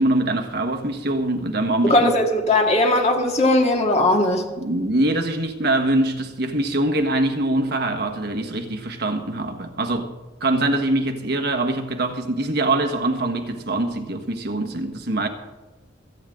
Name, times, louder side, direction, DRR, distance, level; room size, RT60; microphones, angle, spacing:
voice 1, 0.0-2.1 4.6-10.1 10.4-15.3, right 2 dB, 60° right, 1.5 m, -23 dB
voice 2, 1.8-4.5, left 1 dB, 35° left, 2.1 m, -18 dB
26.5 x 9.3 x 3.8 m
head